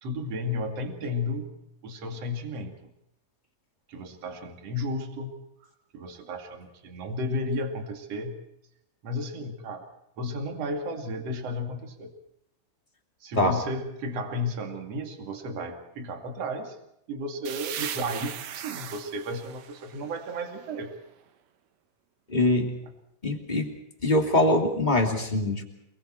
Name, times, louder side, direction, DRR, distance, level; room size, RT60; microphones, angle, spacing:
voice 1, 0.0-1.5 1.8-2.9 3.9-5.3 5.9-8.4 9.0-9.9 10.2-12.1 13.2-16.8 17.1-20.9, left 1 dB, 45° right, 4 dB, 3.1 m, -33 dB
sound 1, 17.4-21.1, right 9 dB, 70° right, 1.7 m, -39 dB
voice 2, 22.3-22.7 23.2-23.7 24.0-25.6, left 1 dB, 15° left, 1 dB, 2.3 m, -23 dB
28.5 x 22.5 x 4.5 m, 0.80 s
omnidirectional pair, 4.6 m